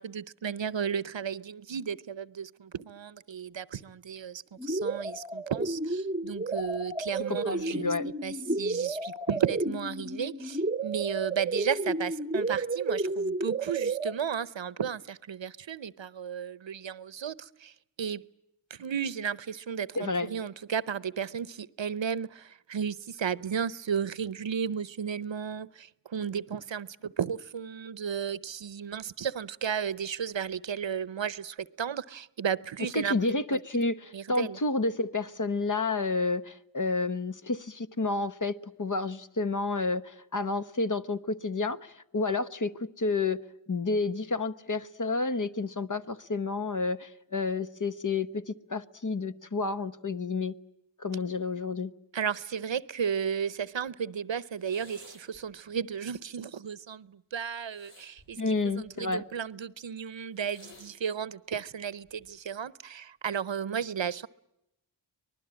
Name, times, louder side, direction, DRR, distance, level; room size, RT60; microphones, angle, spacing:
voice 1, 0.0-17.7 18.0-18.3 18.7-33.2 33.5-33.6 34.1-34.6 52.1-58.4 58.7-64.3, right 7 dB, 70° right, 0.8 m, -34 dB
sound 1, 4.6-14.1, right 2 dB, 15° right, 1.0 m, -32 dB
voice 2, 7.3-8.0 19.9-20.3 32.9-43.4 43.7-50.5 51.0-51.9 58.4-59.2, left 3 dB, 40° left, 1.1 m, -30 dB
sound 2, 54.5-55.4 57.6-59.1 60.3-61.0 62.0-62.4, left 2 dB, 70° left, 7.0 m, -55 dB
24.5 x 20.0 x 8.9 m
wide cardioid pair, 65°, 47 cm